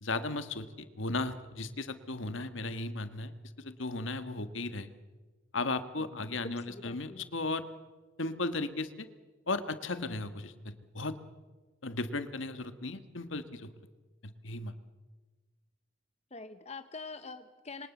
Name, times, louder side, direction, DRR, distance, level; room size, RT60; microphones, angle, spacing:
voice 1, 0.0-4.9 5.5-7.6 8.2-9.1 9.5-11.2 11.8-13.7 14.2-14.7, left 2 dB, 70° left, 11 dB, 1.7 m, -36 dB
voice 2, 6.0-7.3 16.3-17.9, left 3 dB, 35° left, 9 dB, 1.0 m, -45 dB
27.5 x 24.0 x 7.3 m, 1.3 s
head